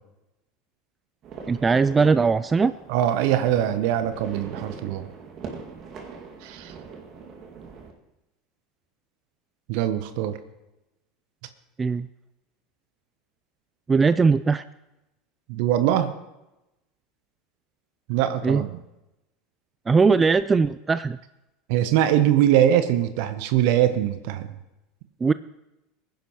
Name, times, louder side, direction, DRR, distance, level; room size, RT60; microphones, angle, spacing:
sound 1, 1.2-7.9, right 5 dB, 45° right, 2.1 m, -41 dB
voice 1, 1.5-2.7 11.8-12.1 13.9-14.6 18.4-18.6 19.9-21.2 25.2-25.3, right 4 dB, 20° right, 15 dB, 0.3 m, -20 dB
voice 2, 2.9-5.1 6.4-6.7 9.7-10.4 15.5-16.1 18.1-18.7 21.7-24.5, right 11 dB, 60° right, 11 dB, 0.8 m, -22 dB
20.5 x 10.5 x 3.1 m, 0.96 s
hypercardioid pair, 75°, 0 cm